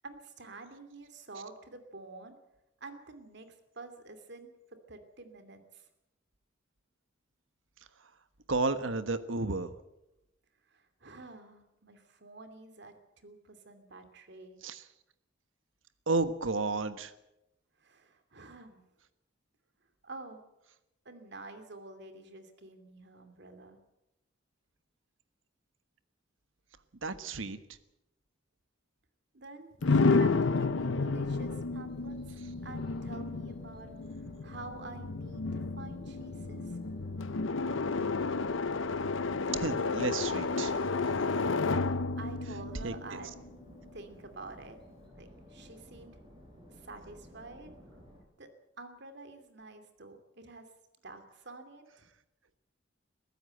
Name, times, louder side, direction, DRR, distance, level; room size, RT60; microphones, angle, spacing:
voice 1, 0.0-2.3 2.8-5.9 10.7-14.6 17.8-18.8 20.0-20.4 21.0-23.8 29.3-33.9 34.4-36.8 42.2-43.4 43.9-44.8 45.1-46.2 46.7-47.7 48.4-48.5 48.8-50.7 51.0-52.0, right 3 dB, 60° right, 8 dB, 2.7 m, -49 dB
voice 2, 8.5-9.7 14.6-14.8 16.1-17.1 27.0-27.6 39.5-40.7 41.0-41.3 42.8-43.2, right 3 dB, 85° right, 12 dB, 1.4 m, -32 dB
sound 1, 29.8-43.6, left 3 dB, 85° left, 0.8 m, -31 dB
sound 2, 29.8-48.2, left 1 dB, 25° right, 6.6 m, -54 dB
22.5 x 15.0 x 7.9 m, 0.91 s
head